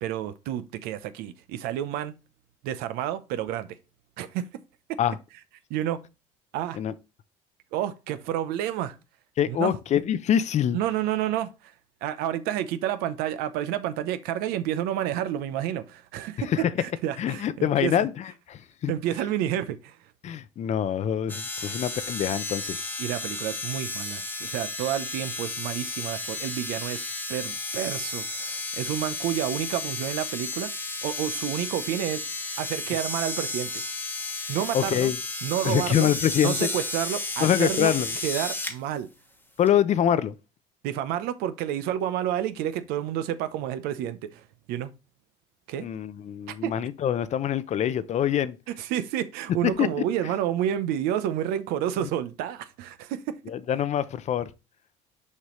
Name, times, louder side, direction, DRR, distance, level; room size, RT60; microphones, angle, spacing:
voice 1, 0.0-2.2 2.6-3.7 4.2-4.5 4.9-5.0 5.7-6.0 6.5-6.8 7.7-9.0 9.4-9.8 10.7-11.7 12.0-17.9 18.9-20.0 23.0-27.0 27.3-30.7 31.0-32.2 32.6-33.8 34.5-35.1 35.4-36.1 36.4-37.9 38.2-39.1 40.8-44.4 44.7-44.9 45.7-45.9 46.6-46.7 48.8-53.4, right 11 dB, 80° right, 0.8 m, -29 dB
voice 2, 9.4-10.8 16.5-16.7 17.2-18.9 20.2-22.8 34.7-35.2 35.6-36.7 37.4-38.1 39.6-40.3 45.8-48.6 49.6-49.9 53.5-54.5, left 10 dB, 50° left, 0.6 m, -25 dB
sound 1, 21.3-38.8 39.7-39.8, left 2 dB, 10° left, 1.1 m, -33 dB
6.5 x 5.3 x 3.1 m
cardioid pair, 100°, 16 cm